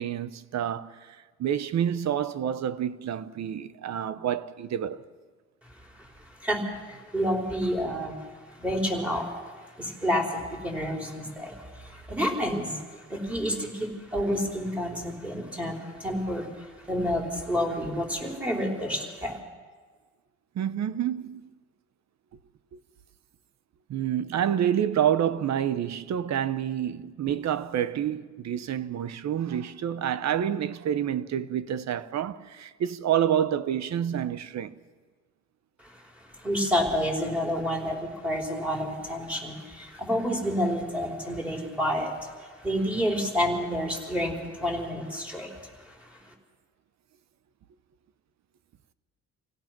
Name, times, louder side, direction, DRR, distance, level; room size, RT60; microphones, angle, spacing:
voice 1, 0.0-5.0 20.5-21.5 22.7-22.8 23.9-34.7, right 9 dB, 60° right, 0.9 m, -28 dB
voice 2, 6.0-8.2 8.5-19.4 35.8-36.1 36.3-46.3, equal, 5° right, 4.6 m, -29 dB
27.5 x 17.0 x 6.1 m
cardioid pair, 90°, 30 cm